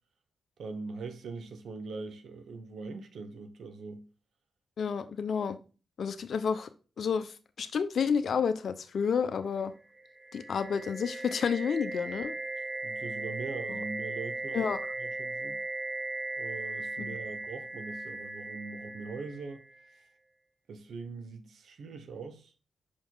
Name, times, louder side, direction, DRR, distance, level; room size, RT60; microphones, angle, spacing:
voice 1, 0.6-4.0 12.8-14.7 15.0-15.6 16.4-19.6 20.7-22.5, right 4 dB, 75° right, 1.1 m, -41 dB
voice 2, 4.8-5.6 6.0-6.7 7.0-9.7 10.3-12.3 14.5-14.8, left 6 dB, 70° left, 0.8 m, -30 dB
sound 1, 10.0-19.8, right 2 dB, 45° right, 4.3 m, -38 dB
6.2 x 5.2 x 3.9 m
supercardioid pair, 45°, 0 cm